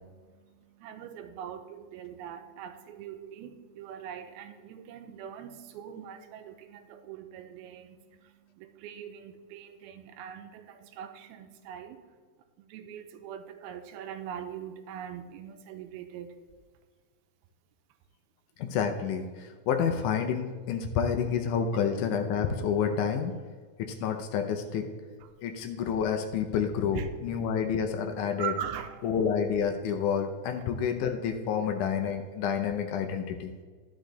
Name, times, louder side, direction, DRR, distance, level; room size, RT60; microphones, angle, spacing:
voice 1, 0.8-8.0 8.6-12.0 12.7-16.3 25.1-25.3 26.9-27.1 27.3-27.4 28.4-29.0, right 9 dB, 90° right, 8 dB, 2.5 m, -41 dB
voice 2, 18.6-23.3 23.8-24.9 25.4-28.5 29.0-33.5, left 7 dB, 80° left, 5 dB, 1.8 m, -29 dB
11.0 x 6.1 x 3.9 m, 1.5 s
omnidirectional pair, 4.3 m